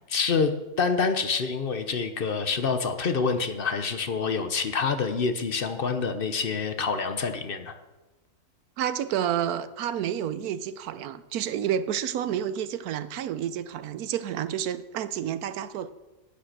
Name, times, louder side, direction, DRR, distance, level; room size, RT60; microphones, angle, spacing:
voice 1, 0.1-7.7, left 5 dB, 45° left, 8 dB, 0.8 m, -27 dB
voice 2, 8.8-15.9, right 9 dB, 75° right, 14 dB, 1.1 m, -30 dB
10.0 x 8.7 x 6.6 m, 1.1 s
omnidirectional pair, 1.7 m